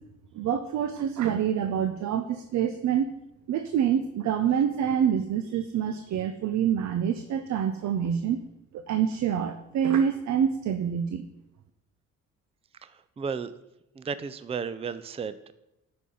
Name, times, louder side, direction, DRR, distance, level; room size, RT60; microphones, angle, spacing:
voice 1, 0.3-3.1 3.5-8.4 8.7-11.2, right 8 dB, 65° right, 8 dB, 0.7 m, -26 dB
voice 2, 12.8-13.5 14.0-15.5, right 6 dB, 20° right, 13 dB, 0.4 m, -34 dB
11.5 x 4.3 x 5.4 m, 0.89 s
cardioid pair, 90°, 30 cm